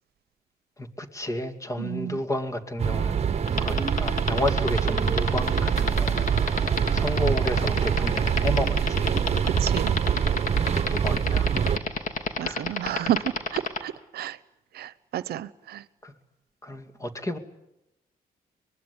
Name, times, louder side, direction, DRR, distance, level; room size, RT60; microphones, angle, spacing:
voice 1, 0.8-6.6 6.9-9.1 10.9-11.5 12.4-12.8 16.0-16.1 16.6-17.4, left 1 dB, 20° left, 8 dB, 2.6 m, -32 dB
voice 2, 1.8-2.2 9.4-10.0 12.4-13.2 13.5-14.4 14.7-15.8, right 12 dB, 85° right, 17 dB, 0.9 m, -31 dB
sound 1, 2.8-11.8, right 7 dB, 40° right, 1.2 m, -25 dB
sound 2, 3.5-13.8, left 5 dB, 55° left, 2.9 m, -27 dB
24.5 x 21.0 x 9.8 m, 0.87 s
cardioid pair, 105°, 16 cm